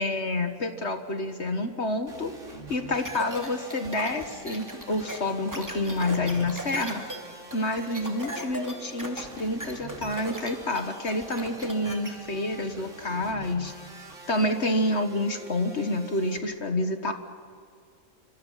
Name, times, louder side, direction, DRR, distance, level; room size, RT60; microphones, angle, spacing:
voice 1, 0.0-2.3 2.7-7.0 7.5-13.7 14.3-17.1, left 1 dB, 50° left, 7 dB, 1.7 m, -28 dB
sound 1, 2.1-16.4, right 2 dB, 55° right, 3.0 m, -46 dB
sound 2, 3.1-12.1, equal, 10° right, 2.8 m, -37 dB
27.5 x 25.0 x 5.7 m, 2.1 s
omnidirectional pair, 1.5 m